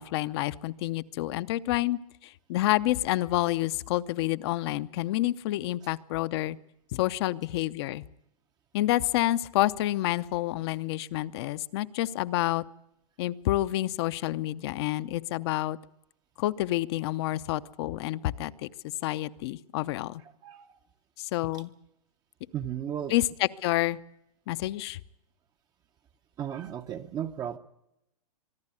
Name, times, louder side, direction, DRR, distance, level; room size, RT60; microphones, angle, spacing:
voice 1, 0.0-6.6 6.9-8.0 8.7-12.6 13.2-15.8 16.4-18.7 19.0-20.2 21.2-21.7 23.1-24.0 24.5-25.0, left 16 dB, 45° left, 15 dB, 0.7 m, -28 dB
voice 2, 22.5-23.1 26.4-27.6, right 10 dB, 20° right, 6 dB, 0.7 m, -34 dB
24.0 x 11.5 x 9.7 m, 0.84 s
hypercardioid pair, 145°, 20 cm